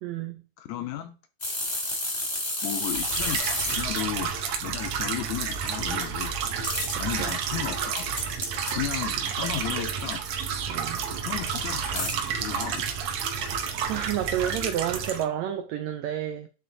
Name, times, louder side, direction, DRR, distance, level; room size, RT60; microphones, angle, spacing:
voice 1, 0.0-0.3 7.2-7.3 10.7-11.0 13.9-16.5, right 11 dB, 90° right, 1.5 m, -30 dB
voice 2, 0.6-1.2 2.6-4.3 4.6-6.3 7.0-8.2 8.7-10.2 11.2-12.8, left 12 dB, 80° left, 1.7 m, -34 dB
sound 1, 1.4-4.0 6.6-6.9 8.0-8.7 10.3-10.5 11.9-12.1, left 1 dB, 20° left, 1.1 m, -30 dB
sound 2, 2.8-15.2, right 6 dB, 70° right, 1.7 m, -30 dB
9.3 x 3.3 x 3.9 m
omnidirectional pair, 3.8 m